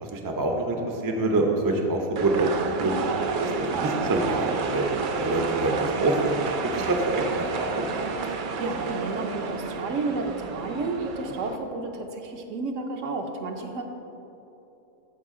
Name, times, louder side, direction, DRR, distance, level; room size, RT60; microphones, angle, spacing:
voice 1, 0.0-2.5 2.8-3.0 3.4-6.4 6.6-7.9, right 2 dB, 25° right, 2 dB, 0.4 m, -26 dB
sound 1, 2.2-11.6, right 5 dB, 85° right, 0.4 m, -30 dB
voice 2, 8.3-13.8, right 3 dB, 65° right, 4 dB, 1.0 m, -31 dB
13.5 x 4.8 x 3.7 m, 3.0 s
omnidirectional pair, 1.5 m